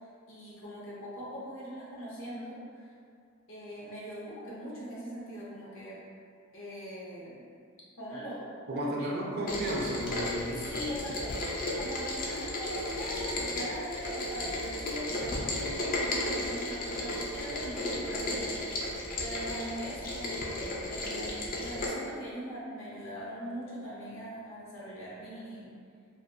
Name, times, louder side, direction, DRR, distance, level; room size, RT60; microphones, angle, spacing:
voice 1, 0.3-2.9 3.5-6.0 6.5-7.4 8.0-9.1 9.4-9.5 10.7-11.3 11.7-25.7, equal, 65° left, -7 dB, 0.7 m, -41 dB
voice 2, 8.7-10.7, equal, 45° right, -2 dB, 0.3 m, -33 dB
Rain, 9.5-21.9, left 1 dB, 40° left, 0.3 m, -34 dB
2.4 x 2.3 x 2.5 m, 2.2 s
head